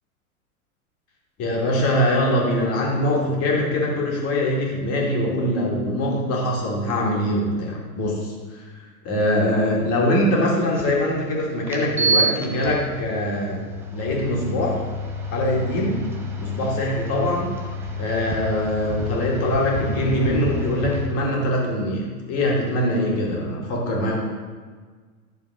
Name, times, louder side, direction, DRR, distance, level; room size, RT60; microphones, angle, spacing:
voice 1, 1.4-8.6 9.0-13.6 13.9-14.8 15.3-16.0 16.4-17.5 18.0-24.2, left 1 dB, 35° left, -2 dB, 2.3 m, -23 dB
sound 1, 10.8-10.9 11.7-21.1, right 1 dB, 5° right, 0.3 m, -28 dB
11.5 x 6.8 x 3.7 m, 1.5 s
figure-of-eight pair, 90°, 44 cm